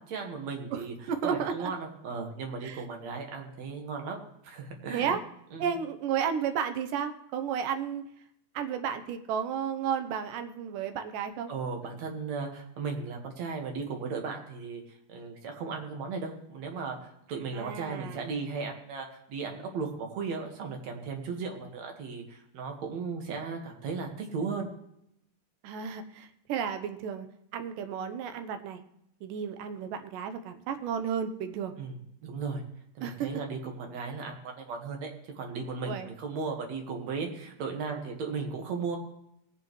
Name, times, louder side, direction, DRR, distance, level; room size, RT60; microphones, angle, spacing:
voice 1, 0.0-4.2 4.4-5.2 5.5-5.7 11.5-24.7 31.8-32.0 32.2-32.6 33.0-39.0, right 4 dB, 60° right, 3 dB, 2.7 m, -36 dB
voice 2, 0.7-1.7 2.6-2.9 4.9-5.2 5.6-8.0 8.5-11.5 17.5-18.3 25.6-27.3 27.5-28.8 29.2-31.7 33.0-33.3 35.8-36.1, right 7 dB, 90° right, 7 dB, 2.5 m, -33 dB
19.5 x 9.4 x 3.1 m, 0.78 s
omnidirectional pair, 3.7 m